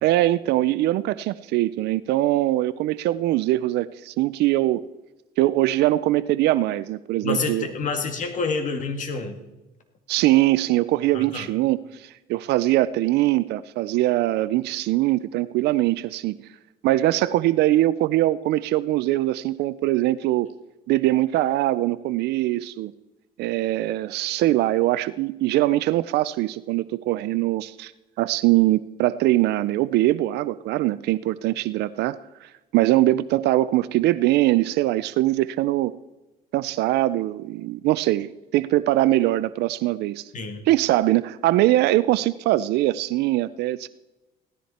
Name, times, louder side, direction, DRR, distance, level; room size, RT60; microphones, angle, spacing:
voice 1, 0.0-4.8 5.4-7.6 10.1-16.4 16.8-20.5 20.9-22.9 23.4-27.9 28.2-36.0 36.5-40.2 40.7-43.9, right 16 dB, 80° right, 16 dB, 0.5 m, -22 dB
voice 2, 7.2-9.4 11.1-11.5 40.3-40.7, left 4 dB, 50° left, 5 dB, 2.1 m, -28 dB
17.0 x 13.5 x 4.3 m, 1.1 s
cardioid pair, 110°, 17 cm